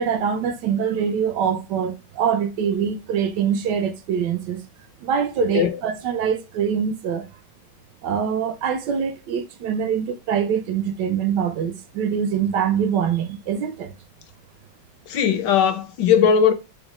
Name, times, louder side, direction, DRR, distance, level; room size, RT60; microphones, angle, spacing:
voice 1, 0.0-4.6 5.0-7.3 8.0-13.9, right 7 dB, 75° right, 1.2 m, -24 dB
voice 2, 15.1-16.5, left 7 dB, 75° left, 1.2 m, -18 dB
5.1 x 2.0 x 4.8 m
omnidirectional pair, 2.0 m